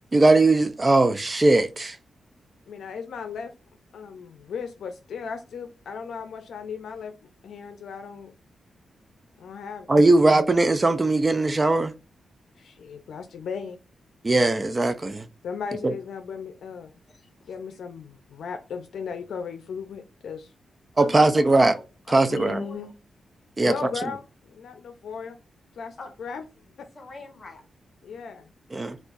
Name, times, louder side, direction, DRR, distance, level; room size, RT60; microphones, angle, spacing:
voice 1, 0.1-2.0 9.9-11.9 14.2-15.3 15.8-15.9 21.0-21.7 22.1-22.6 23.6-23.7 28.7-29.0, right 2 dB, 25° right, 0.4 m, -19 dB
voice 2, 2.7-3.5 3.9-7.1 7.4-8.3 9.4-10.3 12.6-13.8 15.4-16.9 17.5-20.5 22.3-22.9 23.6-25.4 25.8-26.4 26.8-26.9 28.0-28.5, left 6 dB, 80° left, 0.5 m, -36 dB
voice 3, 21.0-22.9 26.0-26.1 26.9-27.6, left 2 dB, 45° left, 1.6 m, -41 dB
4.3 x 2.3 x 2.4 m
wide cardioid pair, 110°, 0 cm